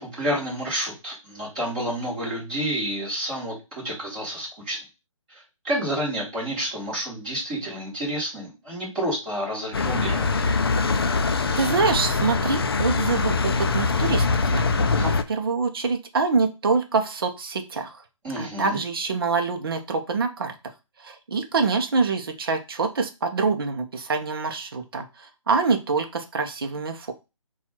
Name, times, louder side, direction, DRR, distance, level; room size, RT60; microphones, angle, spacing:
voice 1, 0.0-4.8 5.6-10.3 15.0-15.1 18.2-18.8, equal, 15° right, -7 dB, 1.4 m, -29 dB
sound 1, 9.7-15.2, left 4 dB, 45° left, 0.4 m, -23 dB
voice 2, 11.6-18.0 18.4-20.5 21.0-27.1, right 4 dB, 45° right, 5 dB, 0.7 m, -25 dB
4.3 x 2.4 x 4.2 m, 0.27 s
hypercardioid pair, 175°, 17 cm